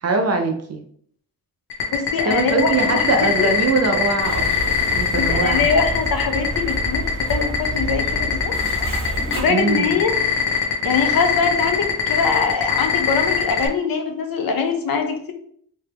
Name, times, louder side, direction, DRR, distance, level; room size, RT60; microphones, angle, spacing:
voice 1, 0.0-0.8 2.3-5.7 9.5-9.9, right 3 dB, 40° right, 4 dB, 0.4 m, -22 dB
sound 1, 1.7-13.7, left 8 dB, 80° left, 1.0 m, -20 dB
voice 2, 1.9-3.5 5.2-8.5 9.4-10.2 10.8-15.3, left 5 dB, 60° left, 5 dB, 0.7 m, -23 dB
sound 2, 4.2-9.4, right 1 dB, 30° left, 1.4 m, -29 dB
3.3 x 2.8 x 3.3 m, 0.65 s
wide cardioid pair, 155°, 40 cm